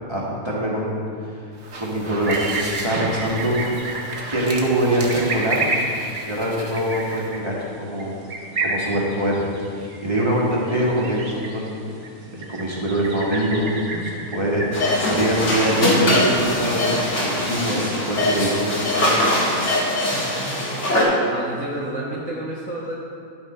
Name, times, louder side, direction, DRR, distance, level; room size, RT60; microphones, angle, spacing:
voice 1, 0.1-1.5 1.8-3.6 4.3-5.6 6.3-8.1 8.6-9.4 9.7-11.8 12.3-16.9 17.4-19.1, right 1 dB, 20° right, -5 dB, 1.5 m, -24 dB
sound 1, 1.5-7.3, right 2 dB, 55° right, 1.3 m, -36 dB
sound 2, 2.2-14.9, right 2 dB, 40° right, 1.0 m, -31 dB
sound 3, 14.7-21.0, left 1 dB, 60° left, 1.9 m, -21 dB
voice 2, 20.1-22.9, right 1 dB, 5° left, -6 dB, 0.9 m, -31 dB
10.5 x 6.0 x 4.4 m, 2.3 s
omnidirectional pair, 1.4 m